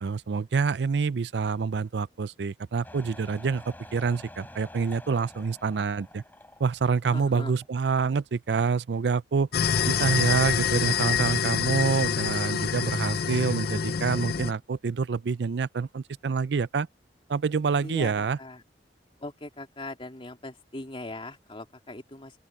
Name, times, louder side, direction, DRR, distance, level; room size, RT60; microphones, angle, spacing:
voice 1, 0.0-6.2 6.6-9.5 9.9-16.9 17.3-18.4, right 5 dB, 70° right, 0.4 m, -27 dB
sound 1, 2.8-7.3 7.6-7.7, left 1 dB, 10° left, 5.8 m, -48 dB
voice 2, 7.0-7.5 9.5-10.1 17.8-18.6 19.2-22.3, left 2 dB, 30° left, 3.0 m, -40 dB
sound 2, 9.5-14.5, left 7 dB, 60° left, 0.5 m, -26 dB
open air
head